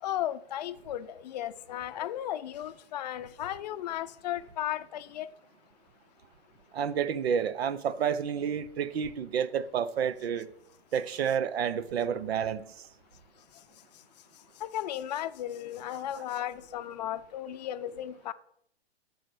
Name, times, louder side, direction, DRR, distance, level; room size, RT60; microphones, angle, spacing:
voice 1, 0.0-5.3 14.6-18.3, left 12 dB, 40° left, 0.6 m, -35 dB
voice 2, 6.7-10.5 10.9-12.6, right 8 dB, 75° right, 1.0 m, -30 dB
12.0 x 4.8 x 6.3 m
hypercardioid pair, 160°, 32 cm